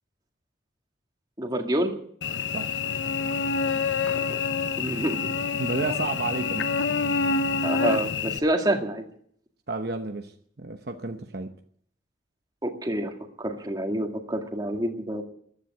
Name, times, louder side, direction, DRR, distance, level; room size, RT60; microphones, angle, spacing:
voice 1, 1.4-1.9 4.3-4.4 4.8-5.2 7.6-9.0 12.6-13.1 13.4-15.2, right 1 dB, 20° right, 3 dB, 1.9 m, -27 dB
Cricket / Buzz, 2.2-8.4, left 5 dB, 75° left, 0.7 m, -27 dB
voice 2, 2.5-2.9 5.6-6.7 9.7-10.3 10.6-11.5, right 3 dB, 55° right, 6 dB, 0.9 m, -31 dB
14.5 x 11.0 x 8.9 m, 0.63 s
head